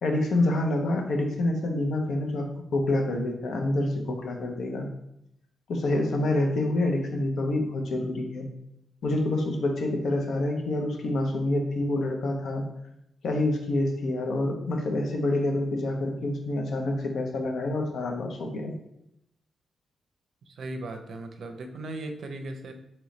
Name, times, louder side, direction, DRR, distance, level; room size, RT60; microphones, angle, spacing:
voice 1, 0.0-4.9 5.7-8.5 9.0-12.6 13.2-18.7, left 1 dB, 75° left, 2 dB, 0.7 m, -27 dB
voice 2, 20.4-22.7, right 2 dB, 65° right, 5 dB, 0.5 m, -37 dB
3.1 x 3.1 x 3.8 m, 0.78 s
cardioid pair, 110°, 0 cm